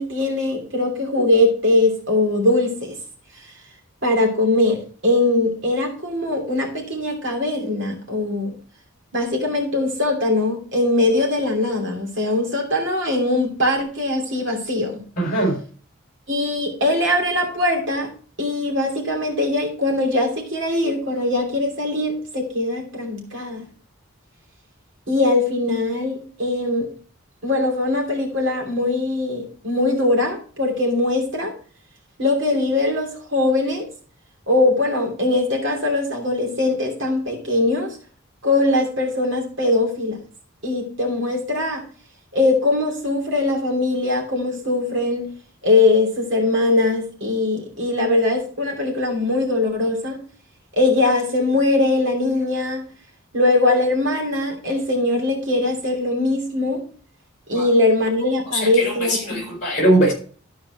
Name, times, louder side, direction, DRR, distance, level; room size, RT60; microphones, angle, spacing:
voice 1, 0.0-3.0 4.0-8.5 9.1-15.0 16.3-18.1 18.4-23.6 25.1-26.9 27.4-31.5 32.2-33.9 34.5-38.0 38.4-40.2 40.6-41.8 42.3-45.3 45.6-50.2 50.8-52.8 53.3-56.8 57.5-59.5, left 2 dB, 60° right, 2.9 m, -21 dB
voice 2, 15.2-15.6 57.5-57.7 58.5-60.1, right 1 dB, 35° left, 4.4 m, -20 dB
13.0 x 4.8 x 4.4 m
head